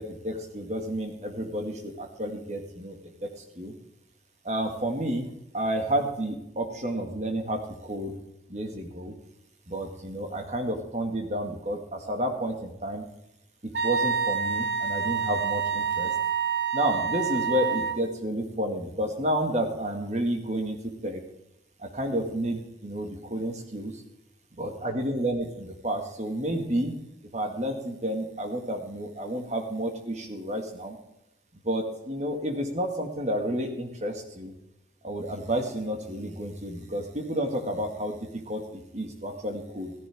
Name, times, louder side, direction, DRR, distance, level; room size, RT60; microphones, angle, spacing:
voice 1, 0.0-3.3 3.6-3.7 4.4-8.1 8.5-9.1 9.7-13.0 13.8-16.1 16.7-21.2 21.8-24.0 24.6-27.0 27.3-31.0 31.6-34.5 35.0-39.9, right 1 dB, 35° right, 3 dB, 2.1 m, -31 dB
Wind instrument woodwind instrument, 13.7-18.0, right 6 dB, 60° right, 1.0 m, -27 dB
15.0 x 15.0 x 3.6 m, 0.84 s
head